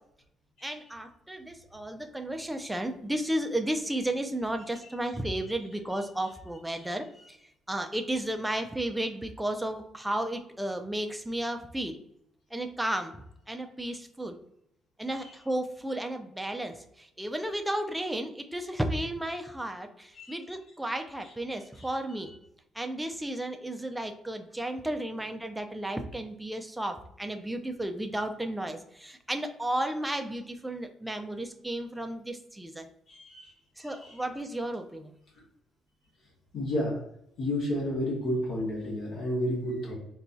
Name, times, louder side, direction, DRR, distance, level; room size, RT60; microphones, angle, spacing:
voice 1, 0.6-7.4 7.7-12.0 12.5-14.4 15.0-22.3 22.7-32.9 33.8-35.1, right 1 dB, 5° right, 5 dB, 0.4 m, -33 dB
voice 2, 33.1-33.5 33.8-34.2 36.5-37.0 37.4-39.9, left 1 dB, 65° left, -3 dB, 1.2 m, -32 dB
4.3 x 2.3 x 2.6 m, 0.77 s
cardioid pair, 130°, 0 cm